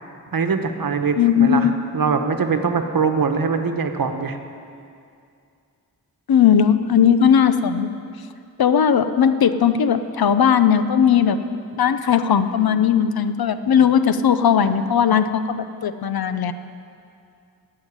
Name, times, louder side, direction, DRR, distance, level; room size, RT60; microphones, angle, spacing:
voice 1, 0.3-1.7 1.9-4.4, right 5 dB, 70° right, 7 dB, 1.0 m, -22 dB
voice 2, 1.2-1.7 6.3-7.9 8.6-11.4 11.8-16.5, left 8 dB, 85° left, 11 dB, 0.7 m, -17 dB
16.0 x 5.8 x 9.9 m, 2.4 s
wide cardioid pair, 80°, 36 cm